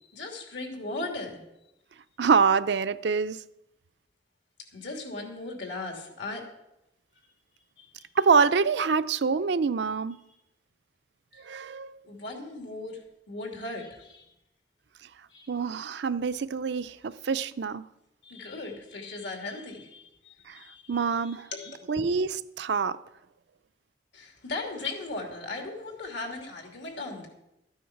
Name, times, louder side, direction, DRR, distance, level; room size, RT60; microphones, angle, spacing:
voice 1, 0.1-1.5 4.7-6.4 7.8-7.9 11.4-11.5 12.0-13.0 13.3-14.3 15.3-15.5 18.2-21.0 21.5-21.8 24.1-27.3, left 2 dB, 75° left, 2.8 m, -37 dB
voice 2, 2.2-3.4 8.2-10.2 11.4-12.0 15.5-17.8 20.5-20.6 20.9-21.5 21.9-23.0, right 5 dB, 65° right, 0.5 m, -25 dB
13.0 x 9.4 x 5.9 m
head